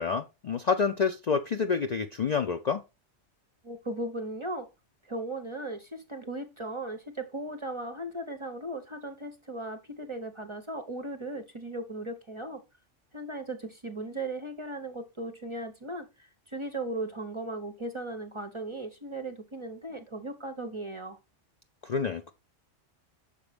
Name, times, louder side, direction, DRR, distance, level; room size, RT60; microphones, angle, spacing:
voice 1, 0.0-2.8 21.8-22.3, left 5 dB, 55° left, 0.5 m, -28 dB
voice 2, 3.6-4.7 5.0-12.6 13.1-21.2, right 2 dB, 30° right, 0.6 m, -37 dB
6.7 x 4.9 x 3.3 m
omnidirectional pair, 1.2 m